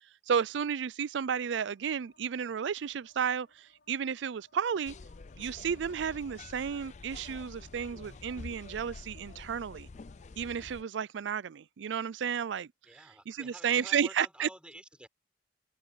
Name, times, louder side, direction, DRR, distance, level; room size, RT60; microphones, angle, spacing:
voice 1, 0.3-4.9 5.4-9.9 10.4-12.7 13.3-14.5, right 7 dB, 85° right, 0.4 m, -32 dB
sound 1, 1.7-10.6, left 3 dB, 75° left, 6.4 m, -69 dB
sound 2, 4.8-10.8, left 3 dB, 40° left, 0.5 m, -48 dB
voice 2, 12.9-15.1, right 1 dB, 5° right, 6.9 m, -50 dB
head